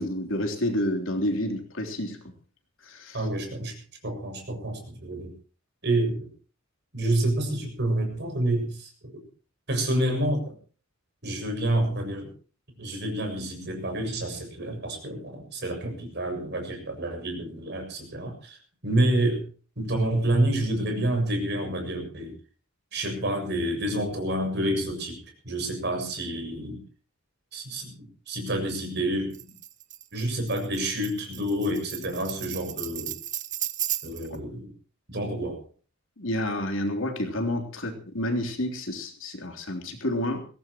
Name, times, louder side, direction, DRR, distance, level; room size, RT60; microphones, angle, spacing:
voice 1, 0.0-2.2 2.8-3.2 36.2-40.4, left 1 dB, 65° left, 4 dB, 3.5 m, -29 dB
voice 2, 3.1-3.7 4.0-5.3 5.8-6.3 6.9-9.2 9.7-10.5 11.2-12.3 12.8-18.6 18.8-19.4 19.8-22.3 22.9-25.2 25.4-26.8 27.5-29.4 30.1-33.2 34.0-34.7 35.1-35.6, right 1 dB, 55° right, 3 dB, 6.8 m, -28 dB
Tambourine, 29.3-34.4, right 13 dB, 35° right, 0.8 m, -35 dB
22.0 x 17.5 x 3.0 m, 0.39 s
head